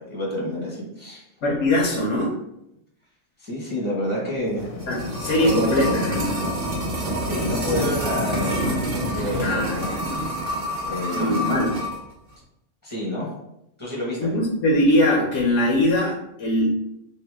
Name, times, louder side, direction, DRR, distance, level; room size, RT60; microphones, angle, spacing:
voice 1, 0.0-1.3 1.8-2.0 3.4-4.7 5.4-6.0 7.3-9.9 10.8-11.6 12.8-13.3 13.8-14.3, left 1 dB, 10° right, -6 dB, 0.9 m, -28 dB
voice 2, 1.4-2.3 4.9-6.4 9.4-10.0 11.1-11.7 14.2-16.8, left 1 dB, 65° left, -2 dB, 0.9 m, -22 dB
sound 1, 4.5-10.0, left 2 dB, 85° left, 1.2 m, -37 dB
sound 2, 4.6-12.0 12.3-12.4, right 1 dB, 50° right, 1.0 m, -27 dB
2.8 x 2.8 x 3.3 m, 0.82 s
omnidirectional pair, 1.4 m